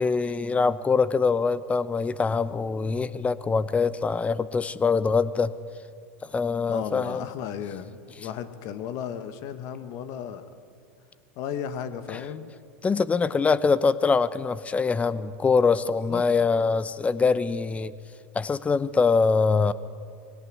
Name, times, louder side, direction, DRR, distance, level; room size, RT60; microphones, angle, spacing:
voice 1, 0.0-5.5 6.2-7.2 12.1-12.2 12.8-17.9 18.3-19.7, left 4 dB, 20° left, 17 dB, 0.9 m, -23 dB
voice 2, 6.7-10.5 11.3-12.5 16.1-16.2, left 8 dB, 55° left, 11 dB, 1.6 m, -35 dB
22.0 x 17.5 x 9.6 m, 2.3 s
hypercardioid pair, 95°, 7 cm